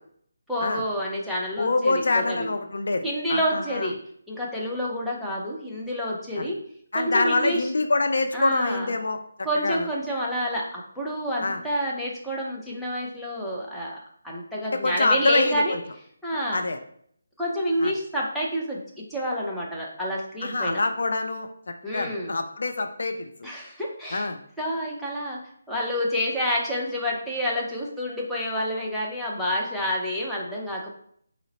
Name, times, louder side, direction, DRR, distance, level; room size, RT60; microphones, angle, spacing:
voice 1, 0.5-2.5 3.0-4.0 4.3-6.6 6.9-7.7 8.3-8.9 9.4-14.0 14.2-15.8 16.2-16.6 17.4-18.8 19.1-20.8 21.8-22.3 23.4-24.3 24.6-25.4 25.7-30.9, equal, ahead, -7 dB, 0.6 m, -28 dB
voice 2, 1.6-3.9 6.4-6.5 6.9-9.2 9.5-9.9 11.4-11.6 14.6-15.8 16.5-16.8 17.8-17.9 20.4-21.5 21.9-23.5 24.1-24.4, left 3 dB, 65° left, 7 dB, 0.4 m, -25 dB
3.8 x 2.0 x 4.0 m, 0.65 s
figure-of-eight pair, 160°, 0 cm